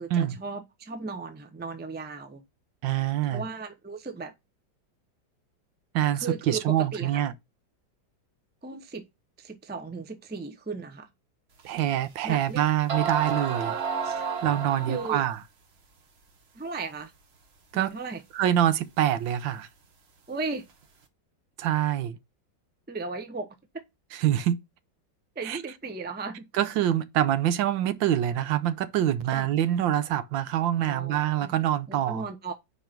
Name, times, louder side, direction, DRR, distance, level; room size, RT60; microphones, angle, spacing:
voice 1, 0.0-2.4 3.3-4.3 6.1-7.2 8.6-9.0 9.4-11.1 12.2-12.6 14.0-14.2 14.9-15.2 16.5-17.1 17.7-18.2 20.3-20.6 22.9-23.8 25.3-26.5 29.3-29.5 30.9-31.5 31.9-32.5, right 4 dB, 10° right, 0.4 m, -36 dB
voice 2, 2.8-3.4 5.9-7.3 11.6-13.8 14.4-15.4 17.7-17.9 18.3-19.7 21.6-22.2 24.2-24.6 25.4-25.6 26.5-32.2, right 11 dB, 85° right, 1.5 m, -25 dB
sound 1, 11.8-11.9 12.6-12.7 12.9-15.4, right 6 dB, 45° right, 1.0 m, -31 dB
5.1 x 4.7 x 5.9 m
omnidirectional pair, 2.1 m